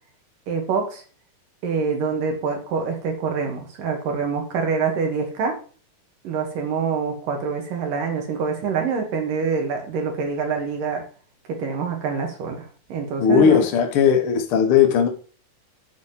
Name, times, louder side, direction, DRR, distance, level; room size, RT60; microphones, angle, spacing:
voice 1, 0.5-1.0 1.6-5.6 6.2-11.0 11.5-13.6, right 5 dB, 75° right, 2 dB, 3.8 m, -25 dB
voice 2, 13.2-15.1, left 7 dB, 60° left, 5 dB, 1.4 m, -17 dB
10.5 x 4.2 x 7.2 m, 0.39 s
omnidirectional pair, 3.9 m